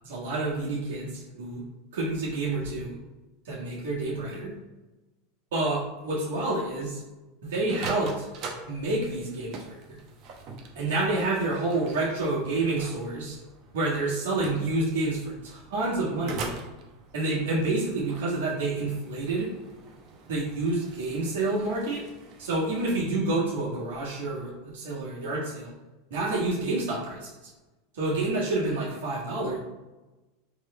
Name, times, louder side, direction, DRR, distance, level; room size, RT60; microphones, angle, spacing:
voice 1, 0.0-1.6 1.9-3.0 3.4-4.5 5.5-7.0 7.4-8.3 8.7-9.8 10.7-13.4 13.7-16.5 17.1-19.5 20.3-22.0 22.4-25.7 26.1-27.5 27.9-29.6, right 2 dB, 80° right, -6 dB, 1.5 m, -28 dB
sound 1, 7.7-23.1, right 4 dB, 50° right, 0.8 m, -43 dB
3.5 x 3.1 x 4.3 m, 1.1 s
hypercardioid pair, 110°, 0 cm